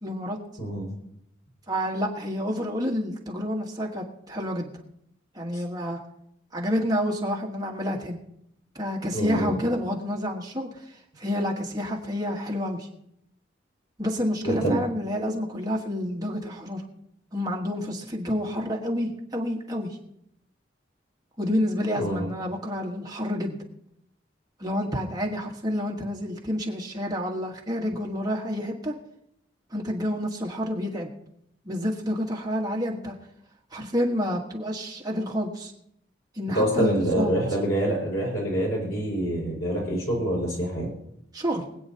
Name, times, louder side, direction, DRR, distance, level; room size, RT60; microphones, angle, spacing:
voice 1, 0.0-0.4 1.7-4.7 5.3-6.0 6.5-8.2 8.7-12.9 14.0-16.8 17.3-20.0 21.4-23.6 24.6-28.9 29.7-31.1 31.6-33.1 33.7-35.7 36.3-37.4 41.3-41.6, equal, 20° right, 0 dB, 1.4 m, -29 dB
voice 2, 0.6-0.9 9.1-9.6 14.4-14.8 22.0-22.3 36.5-40.9, right 1 dB, 90° left, -3 dB, 5.4 m, -26 dB
24.0 x 8.8 x 2.8 m, 0.77 s
head